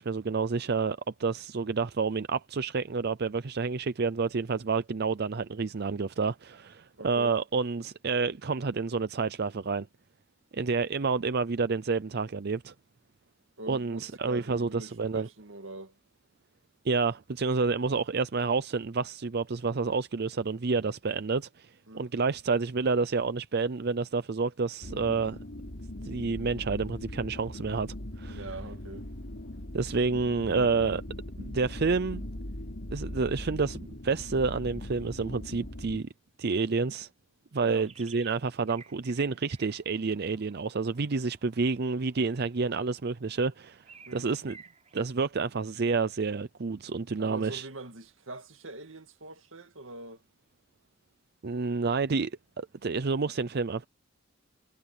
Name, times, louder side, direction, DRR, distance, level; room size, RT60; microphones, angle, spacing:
voice 1, 0.0-9.9 10.5-12.7 13.7-15.3 16.8-25.4 26.0-28.4 29.7-31.0 31.4-32.3 32.9-36.1 36.4-37.1 37.5-43.8 44.1-44.6 44.9-47.7 51.4-52.3 52.6-53.9, right 4 dB, 55° right, 0.6 m, -29 dB
voice 2, 7.0-7.4 13.6-16.0 21.9-22.1 28.3-29.1 37.6-37.9 44.1-44.3 47.2-50.2, right 2 dB, 85° right, 2.1 m, -43 dB
sound 1, 24.8-36.0, left 1 dB, 65° left, 3.2 m, -40 dB
sound 2, 37.9-38.4 38.7-45.0, right 5 dB, 35° right, 4.8 m, -55 dB
head